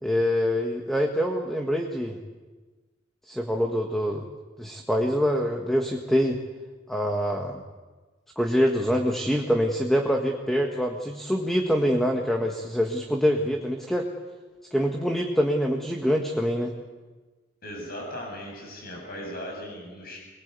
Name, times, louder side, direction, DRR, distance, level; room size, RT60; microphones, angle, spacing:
voice 1, 0.0-2.2 3.3-4.2 4.6-6.4 6.9-7.6 8.3-14.1 14.7-16.7, equal, ahead, 2 dB, 1.7 m, -25 dB
voice 2, 17.6-20.2, equal, 50° left, 0 dB, 8.0 m, -37 dB
25.0 x 22.0 x 8.4 m, 1.3 s
head